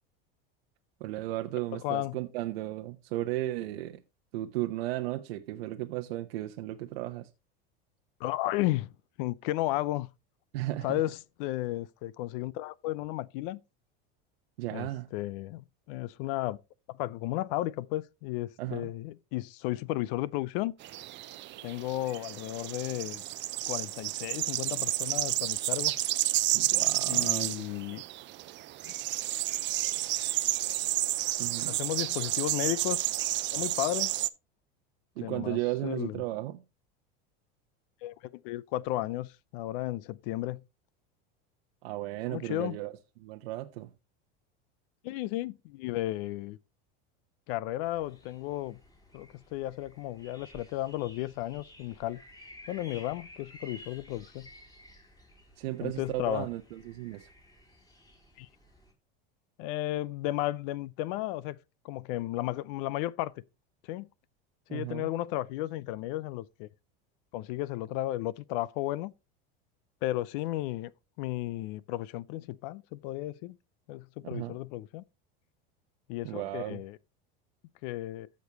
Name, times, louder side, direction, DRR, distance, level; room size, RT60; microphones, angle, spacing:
voice 1, 1.0-4.0 4.3-7.3 10.5-11.0 14.6-15.1 18.6-18.9 26.5-27.8 31.4-31.8 35.2-36.6 41.8-42.9 43.2-43.9 55.6-57.3 64.7-65.1 74.2-74.6 76.2-76.8, right 16 dB, 85° right, 0.9 m, -35 dB
voice 2, 1.8-2.2 8.2-8.9 9.2-10.1 10.8-13.6 14.7-16.6 17.0-20.7 21.6-23.2 23.7-26.0 27.1-28.0 31.7-33.0 33.5-34.1 35.2-36.2 38.0-38.1 38.4-40.6 42.3-42.8 45.0-46.6 47.5-48.8 49.1-52.2 52.7-54.5 55.8-56.5 58.4-58.5 59.6-61.6 61.8-63.3 63.8-64.1 64.7-66.7 67.3-69.1 70.0-70.9 71.2-73.5 73.9-75.0 76.1-77.0 77.8-78.3, left 16 dB, 65° left, 0.6 m, -34 dB
sound 1, 20.8-34.3, right 15 dB, 40° right, 0.6 m, -31 dB
sound 2, 47.8-58.9, equal, 10° left, 3.1 m, -54 dB
14.5 x 5.3 x 2.9 m
supercardioid pair, 120°, 29 cm